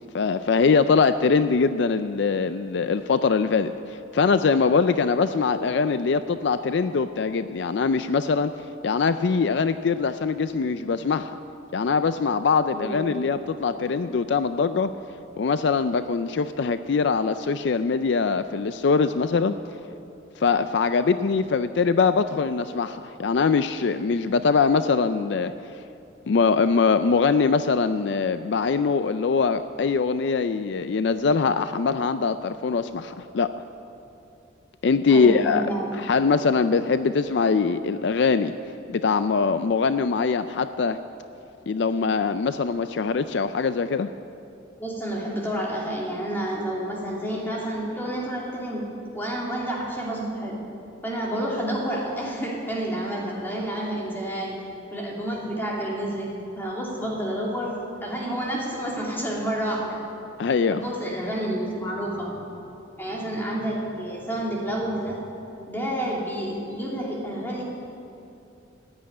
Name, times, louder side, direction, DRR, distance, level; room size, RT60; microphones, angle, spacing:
voice 1, 0.1-8.5 8.8-11.4 11.7-14.9 15.4-19.6 20.4-25.5 26.3-33.5 34.8-35.6 35.9-38.5 38.9-41.0 41.7-44.1 60.4-60.8, left 5 dB, 65° left, 11 dB, 0.4 m, -22 dB
voice 2, 12.7-13.1 35.1-35.9 44.8-48.8 49.1-50.6 51.0-54.6 54.9-60.0 60.7-62.5 63.0-65.2 65.7-67.6, right 1 dB, 10° left, -4 dB, 2.8 m, -29 dB
15.5 x 8.9 x 9.6 m, 2.7 s
head